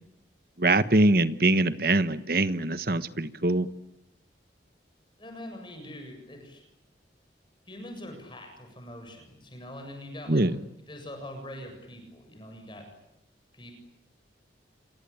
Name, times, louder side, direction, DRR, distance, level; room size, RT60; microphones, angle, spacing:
voice 1, 0.6-3.7 10.3-10.6, right 2 dB, 55° right, 12 dB, 1.3 m, -23 dB
voice 2, 5.2-6.6 7.7-10.4 10.9-12.8 13.5-13.7, left 1 dB, 25° left, 4 dB, 7.5 m, -43 dB
28.0 x 24.0 x 8.7 m, 0.82 s
head